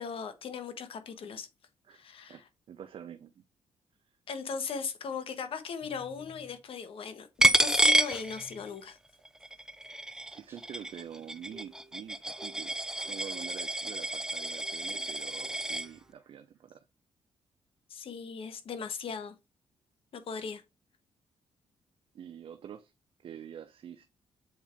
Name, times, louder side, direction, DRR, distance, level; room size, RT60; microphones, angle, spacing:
voice 1, 0.0-1.5 1.9-2.4 4.3-9.0 17.9-19.3 20.1-20.6, left 6 dB, 65° left, 1.3 m, -38 dB
voice 2, 2.3-3.4 9.9-16.8 22.1-22.9 23.2-24.1, right 9 dB, 60° right, 0.6 m, -46 dB
sound 1, 5.7-6.6 8.2-8.7 9.4-9.5 9.8-9.9 10.1-16.3, right 1 dB, 25° right, 2.6 m, -56 dB
Coin (dropping), 7.4-8.9 9.3-15.9, right 1 dB, 5° right, 0.4 m, -29 dB
7.3 x 4.5 x 3.5 m
cardioid pair, 80°, 10 cm